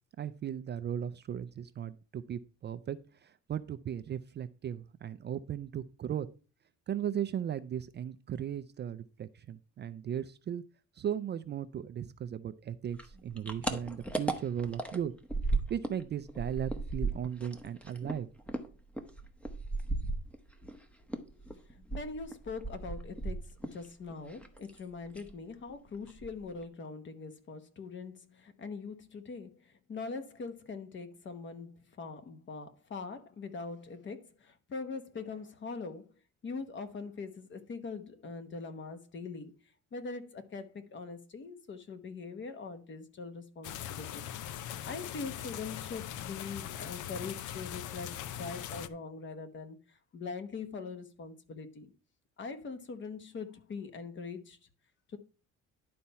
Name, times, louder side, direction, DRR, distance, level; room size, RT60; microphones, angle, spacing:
voice 1, 0.2-6.3 6.9-10.6 11.0-15.1 15.7-18.3, right 9 dB, 35° right, 0.4 m, -37 dB
sound 1, 12.9-16.0 16.3-20.8 21.1-23.9 24.1-24.8 25.1-25.4 25.7-25.8 26.1-26.6, right 2 dB, 5° left, 0.8 m, -36 dB
voice 2, 21.7-36.1 36.4-39.5 39.9-51.9 52.4-54.6 55.1-55.2, left 4 dB, 40° left, 1.1 m, -42 dB
sound 2, 43.6-48.9, left 11 dB, 75° left, 0.6 m, -41 dB
11.0 x 4.2 x 5.6 m
cardioid pair, 155°, 30 cm